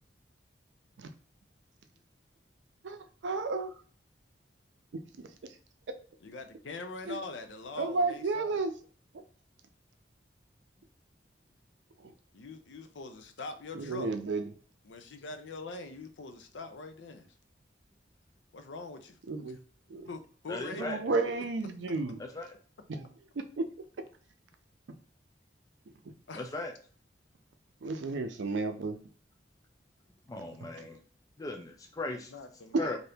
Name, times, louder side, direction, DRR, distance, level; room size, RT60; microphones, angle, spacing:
voice 1, 3.2-3.7 7.1-7.2 7.8-8.7 12.0-12.1 13.7-14.5 19.3-19.6 19.9-20.1 20.8-22.2 22.9-23.1 23.6-23.7 27.8-29.0 30.6-30.7 32.8-32.9, right 3 dB, 80° right, 7 dB, 0.5 m, -32 dB
voice 2, 6.2-8.6 12.3-14.1 14.8-17.3 18.5-19.2 19.5-19.6 20.1-21.2 26.3-26.6 32.3-33.0, left 3 dB, 80° left, 7 dB, 0.5 m, -43 dB
voice 3, 20.5-21.0 22.2-22.5 26.4-26.7 30.3-31.0 31.4-32.3 32.8-33.0, left 2 dB, 20° left, 4 dB, 0.3 m, -37 dB
2.8 x 2.6 x 3.4 m, 0.43 s
head